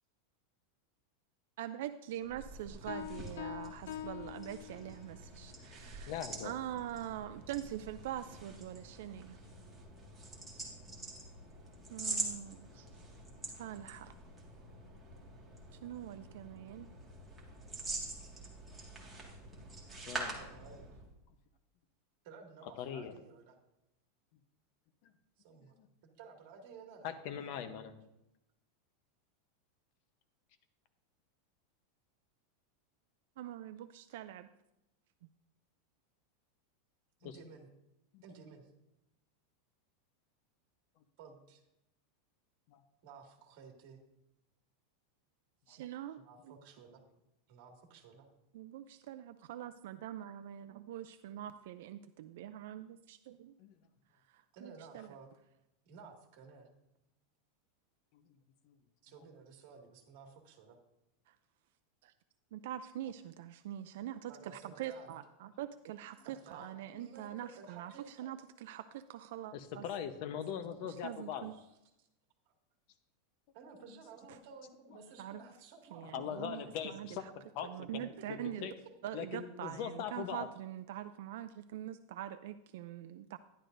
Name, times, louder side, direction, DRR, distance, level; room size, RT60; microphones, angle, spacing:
voice 1, 1.6-6.1 6.4-9.4 11.9-12.9 13.6-14.1 15.8-16.9 33.4-34.5 45.7-46.2 46.5-46.6 48.5-53.5 54.3-55.1 62.0-62.1 62.5-69.8 71.0-71.5 75.2-75.4 75.9-77.1 77.6-78.7 79.0-83.4, right 12 dB, 65° right, 11 dB, 0.4 m, -44 dB
sound 1, 2.2-21.1, right 2 dB, 5° right, 1.8 m, -46 dB
Piano, 2.9-5.2, left 12 dB, 80° left, 0.5 m, -45 dB
voice 2, 6.1-6.5 20.0-20.4 22.8-23.1 25.0-25.1 25.6-25.9 27.0-27.9 37.2-37.4 38.1-38.2 42.7-42.8 53.6-53.7 58.1-58.2 58.7-58.8 69.5-71.5 76.1-77.2 77.5-77.7 77.9-78.7 79.1-80.5, left 8 dB, 45° left, 9 dB, 0.9 m, -41 dB
voice 3, 20.1-21.0 22.2-23.6 25.4-25.7 26.2-27.7 37.2-37.7 38.2-38.7 41.2-41.6 43.0-44.0 46.2-47.1 47.5-48.3 54.5-55.3 55.9-56.7 59.0-60.8 64.3-65.1 66.2-68.3 71.5-71.7 72.0-72.1 72.5-72.6 73.5-76.9 77.6-77.7 78.3-78.7, right 5 dB, 50° right, 2 dB, 2.0 m, -54 dB
12.0 x 11.0 x 2.6 m, 0.88 s
supercardioid pair, 165°, 0 cm